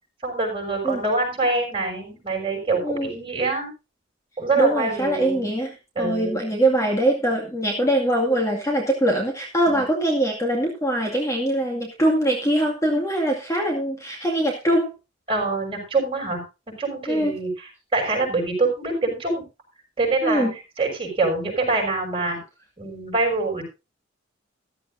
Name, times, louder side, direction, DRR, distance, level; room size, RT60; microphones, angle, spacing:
voice 1, 0.2-3.7 4.4-5.5 5.9-6.4 9.7-9.8 15.3-16.4 16.8-19.4 20.0-20.5 20.8-22.4 22.8-23.6, right 3 dB, 30° right, 1 dB, 6.4 m, -25 dB
voice 2, 4.6-5.7 6.0-14.9 17.1-17.4 20.2-20.5, right 1 dB, 15° left, 0 dB, 2.2 m, -22 dB
14.5 x 13.5 x 2.6 m, 0.28 s
head